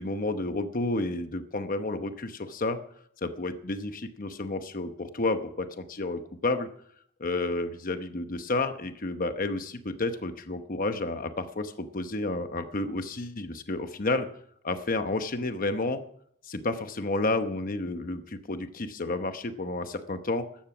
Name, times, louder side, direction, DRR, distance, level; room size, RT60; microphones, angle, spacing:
voice 1, 0.0-2.8 3.2-6.7 7.2-14.3 14.6-16.0 16.4-20.5, left 2 dB, 45° left, 8 dB, 0.9 m, -31 dB
14.5 x 13.0 x 6.0 m, 0.66 s
head